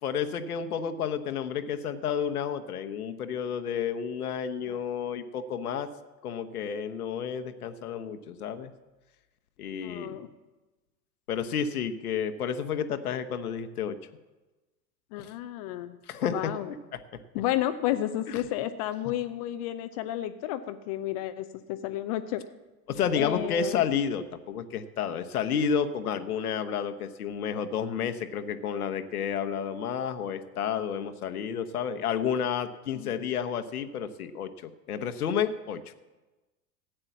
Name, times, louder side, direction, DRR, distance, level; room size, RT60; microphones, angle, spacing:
voice 1, 0.0-5.9 6.2-8.7 9.6-10.2 11.3-14.0 15.2-15.3 16.1-17.2 18.3-18.4 19.0-19.1 22.9-35.8, left 7 dB, 65° left, 9 dB, 1.1 m, -31 dB
voice 2, 9.8-10.3 15.1-16.0 16.3-16.7 17.3-22.4 23.2-23.8 33.0-33.1, left 13 dB, 25° left, 11 dB, 0.4 m, -32 dB
14.5 x 8.8 x 7.4 m, 1.1 s
figure-of-eight pair, 90°, 49 cm